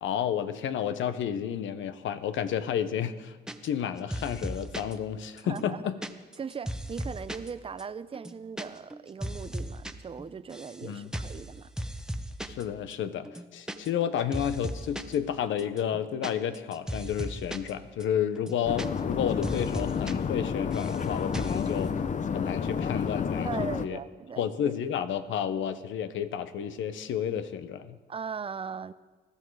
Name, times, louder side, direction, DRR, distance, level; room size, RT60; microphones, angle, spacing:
voice 1, 0.0-3.4 3.6-6.0 10.8-11.1 12.5-21.9 22.3-24.0 24.4-28.0, left 9 dB, 75° left, 1.0 m, -31 dB
sound 1, 3.5-4.9 5.4-7.5 7.8-7.9 8.1-8.7 8.9-9.9 10.2-10.8 11.1-11.4 11.8-12.6 12.9-13.0 13.3-14.1 14.3-15.2 15.6-17.7 18.0-18.1 18.4-19.2 19.4-20.1 20.4-21.0 21.3-21.7, right 1 dB, 5° right, 1.0 m, -36 dB
voice 2, 5.4-5.8 6.4-11.7 23.4-24.7 28.1-28.9, right 6 dB, 30° right, 0.6 m, -39 dB
sound 2, 18.6-23.9, left 6 dB, 40° left, 0.7 m, -30 dB
20.0 x 13.5 x 4.8 m
cardioid pair, 90°, 20 cm